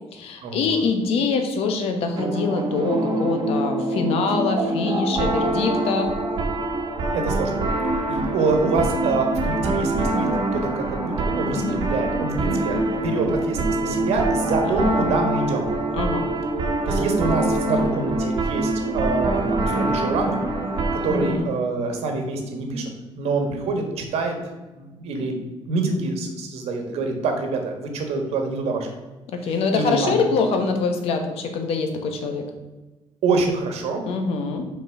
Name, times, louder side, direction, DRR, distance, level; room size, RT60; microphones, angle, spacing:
voice 1, 0.1-6.1 11.5-11.8 14.6-15.1 15.9-16.2 21.1-21.5 29.3-32.5 34.1-34.6, left 4 dB, 70° left, 5 dB, 1.2 m, -24 dB
sound 1, 2.1-21.4, right 2 dB, 45° right, 1.2 m, -24 dB
voice 2, 7.1-7.6 8.1-15.7 16.8-20.4 20.9-22.9 23.2-24.4 24.7-28.9 29.7-30.2 33.2-34.0, right 3 dB, 75° right, 4 dB, 1.5 m, -26 dB
5.9 x 4.6 x 5.9 m, 1.2 s
cardioid pair, 170°, 11 cm